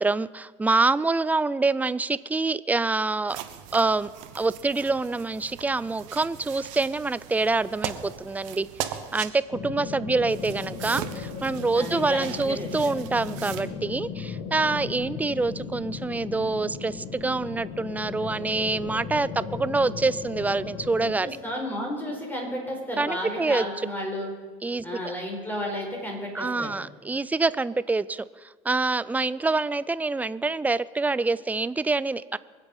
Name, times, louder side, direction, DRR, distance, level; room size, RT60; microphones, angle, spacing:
voice 1, 0.0-3.4 3.7-4.1 4.4-21.4 23.0-23.7 24.6-24.8 26.3-28.2 28.6-32.4, right 3 dB, 10° right, 17 dB, 0.4 m, -26 dB
sound 1, 3.3-9.3 10.3-13.6, right 11 dB, 85° right, 1.2 m, -39 dB
sound 2, 9.5-21.1, left 5 dB, 65° left, 1.8 m, -36 dB
voice 2, 11.7-12.9 21.0-24.3 24.8-26.8, equal, 10° left, 0 dB, 4.8 m, -33 dB
24.0 x 8.1 x 5.5 m, 1.5 s
supercardioid pair, 105°, 16 cm